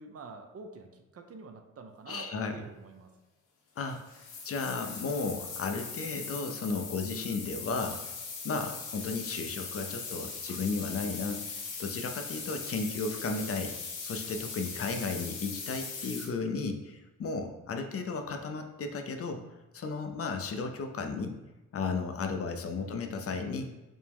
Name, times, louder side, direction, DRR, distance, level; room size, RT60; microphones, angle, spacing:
voice 1, 0.0-3.1 15.1-15.2 22.8-23.0, right 3 dB, 50° right, 5 dB, 0.6 m, -48 dB
voice 2, 2.1-2.5 3.8-4.0 4.4-8.0 8.4-11.4 11.8-13.7 14.0-19.4 19.7-21.4 21.7-23.7, left 4 dB, 50° left, 6 dB, 0.5 m, -34 dB
sound 1, 3.8-16.3, left 5 dB, 90° left, 0.8 m, -40 dB
5.1 x 2.1 x 3.4 m, 1.1 s
cardioid pair, 75°, 31 cm